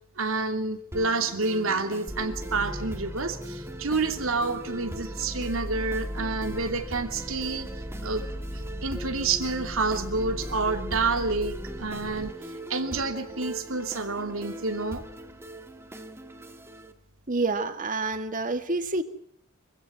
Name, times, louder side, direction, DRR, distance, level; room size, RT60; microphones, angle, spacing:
voice 1, 0.2-7.7 8.0-8.2 8.8-12.3 12.7-15.0, right 3 dB, 75° right, 7 dB, 2.7 m, -28 dB
sound 1, 0.9-16.9, right 1 dB, 15° right, 1.7 m, -41 dB
sound 2, 2.1-12.3, equal, 5° left, 0.9 m, -38 dB
voice 2, 17.3-19.0, right 3 dB, 40° right, 8 dB, 2.0 m, -28 dB
25.0 x 16.0 x 9.1 m, 0.64 s
head